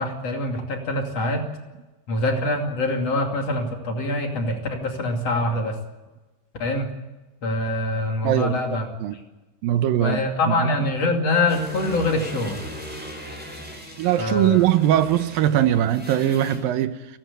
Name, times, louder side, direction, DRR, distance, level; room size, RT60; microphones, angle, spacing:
voice 1, 0.0-1.4 2.1-5.8 6.6-6.9 7.4-8.9 10.0-12.6 14.2-14.6, left 2 dB, 45° left, 3.5 m, -24 dB
voice 2, 8.2-9.2 9.6-10.2 10.5-10.7 14.0-17.2, right 11 dB, 80° right, 2.7 m, -21 dB
sound 1, 11.5-16.6, equal, 5° right, 5.5 m, -38 dB
29.5 x 12.5 x 8.2 m
omnidirectional pair, 4.0 m